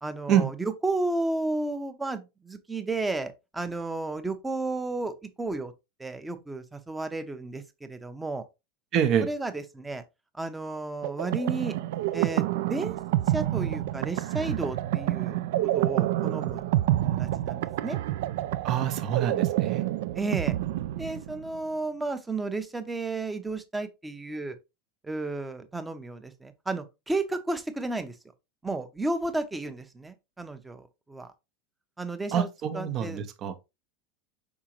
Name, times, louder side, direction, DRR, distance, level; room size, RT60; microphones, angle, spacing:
voice 1, 0.0-5.7 6.0-8.4 9.2-10.0 10.3-11.8 12.1-13.0 13.3-15.4 15.7-16.6 17.0-18.0 20.1-20.6 21.0-24.6 25.0-28.2 28.6-31.3 32.0-33.3, right 2 dB, 10° right, 0.7 m, -33 dB
voice 2, 8.9-9.3 18.6-19.8 32.3-33.1 33.4-33.5, right 9 dB, 45° right, 0.8 m, -26 dB
sound 1, 11.0-21.6, right 14 dB, 75° right, 0.3 m, -28 dB
5.0 x 3.6 x 2.9 m
supercardioid pair, 110°, 0 cm